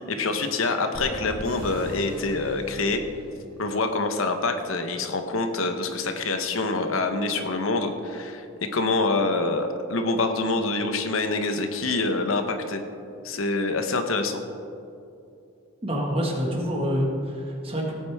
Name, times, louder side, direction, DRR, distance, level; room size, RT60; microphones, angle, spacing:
voice 1, 0.1-3.0 3.6-12.8 13.2-14.4, left 3 dB, 80° left, 6 dB, 1.0 m, -26 dB
sound 1, 0.9-3.7, equal, 45° right, 2.2 m, -38 dB
voice 2, 15.8-18.0, equal, 25° right, -1 dB, 1.7 m, -27 dB
17.5 x 8.7 x 3.5 m, 2.6 s
head